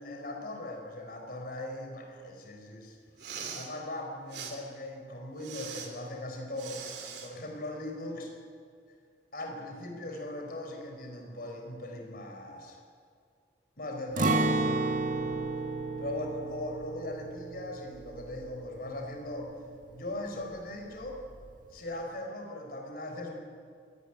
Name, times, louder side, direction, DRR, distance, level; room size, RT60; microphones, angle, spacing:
voice 1, 0.0-3.0 3.5-6.8 7.2-8.3 9.3-12.8 13.8-14.6 15.2-15.4 16.0-19.5 19.9-21.2 21.7-23.4, left 1 dB, 55° left, 2 dB, 4.1 m, -39 dB
Respiratory sounds, 3.1-3.7 4.3-4.5 5.4-5.9 6.6-7.3, right 6 dB, 65° right, 3.4 m, -41 dB
Acoustic guitar, 14.2-20.1 20.4-20.5 21.0-21.5, right 3 dB, 45° right, 1.6 m, -32 dB
25.5 x 11.5 x 10.0 m, 2.2 s
head